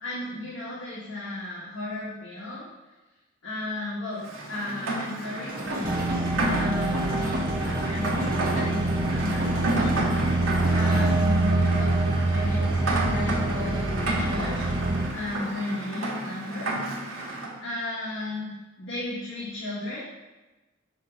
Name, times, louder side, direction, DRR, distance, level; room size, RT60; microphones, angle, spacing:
voice 1, 0.0-2.7 3.4-9.9 10.7-12.8 13.0-14.7 15.1-16.7 17.6-18.5 18.8-20.0, left 2 dB, 65° left, -8 dB, 1.5 m, -34 dB
Rain, 4.2-17.5, right 2 dB, 80° right, 1.3 m, -32 dB
sound 1, 5.5-11.3, equal, 45° right, 1.0 m, -34 dB
sound 2, 5.8-15.1, right 2 dB, 25° right, 0.6 m, -25 dB
6.2 x 3.9 x 4.6 m, 1.1 s
head